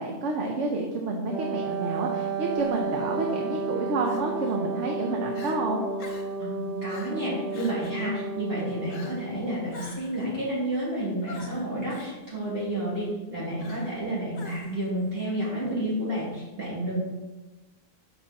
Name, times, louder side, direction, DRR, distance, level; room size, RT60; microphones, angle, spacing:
voice 1, 0.0-5.9, right 2 dB, 70° right, 1 dB, 1.1 m, -29 dB
Wind instrument woodwind instrument, 1.3-9.4, right 4 dB, 5° right, 1.2 m, -32 dB
Crying sobbing, 2.5-2.8 4.0-4.6 5.0-5.1 5.3-5.6 6.0-6.4 6.9-7.2 7.5-8.0 8.9-9.3 9.7-10.2 11.3-12.1 13.6-14.0 14.3-14.9, left 3 dB, 80° left, 1.4 m, -46 dB
voice 2, 6.4-17.0, right 1 dB, 50° right, -8 dB, 3.3 m, -30 dB
8.0 x 5.4 x 4.1 m, 1.1 s
omnidirectional pair, 1.3 m